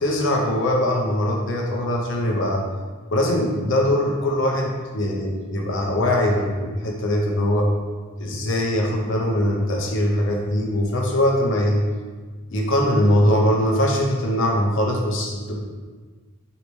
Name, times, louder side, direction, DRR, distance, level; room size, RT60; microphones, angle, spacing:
voice 1, 0.0-2.6 3.1-7.7 8.2-11.8 12.5-15.6, left 1 dB, 60° left, 0 dB, 0.6 m, -21 dB
3.1 x 2.8 x 3.0 m, 1.4 s
head